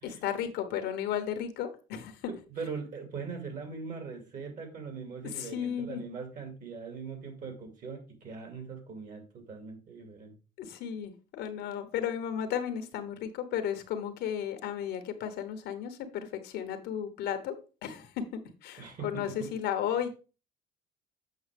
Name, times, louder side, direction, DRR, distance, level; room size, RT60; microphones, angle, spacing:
voice 1, 0.0-2.4 5.2-6.0 10.6-17.5 17.8-18.2 18.6-20.1, left 9 dB, 80° left, 1.2 m, -34 dB
voice 2, 2.3-10.4 18.8-19.5, right 5 dB, 50° right, 2.4 m, -41 dB
7.8 x 5.8 x 3.5 m
cardioid pair, 110°, 17 cm